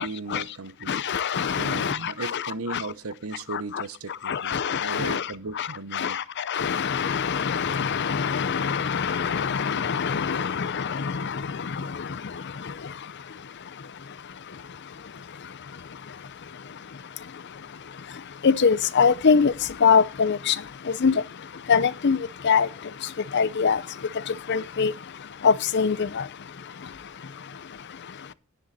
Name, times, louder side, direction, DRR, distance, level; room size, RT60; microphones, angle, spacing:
voice 1, 0.0-1.0 1.6-6.2, right 3 dB, 75° right, 0.9 m, -36 dB
voice 2, 0.9-2.4 2.7-2.8 3.5-3.6 4.3-5.2 5.6-5.7 5.9-11.4 18.4-19.5 19.8-20.5 21.0-21.1 21.7-22.2 22.4-22.7 23.3-23.8 24.5-24.9 25.4-26.2, left 6 dB, 50° left, 0.5 m, -23 dB
10.0 x 10.0 x 4.2 m
head